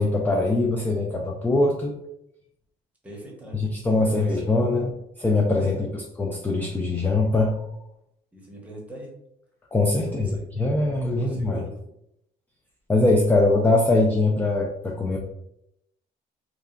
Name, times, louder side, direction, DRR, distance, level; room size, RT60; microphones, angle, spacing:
voice 1, 0.0-1.9 3.5-4.9 5.2-7.6 9.7-11.6 12.9-15.2, left 2 dB, 10° left, 0 dB, 0.3 m, -22 dB
voice 2, 3.0-3.6 3.8-4.8 5.6-5.8 8.3-9.1 10.0-10.4 11.1-11.7, right 1 dB, 10° right, -3 dB, 0.9 m, -41 dB
2.8 x 2.4 x 2.4 m, 0.79 s
cardioid pair, 110°, 17 cm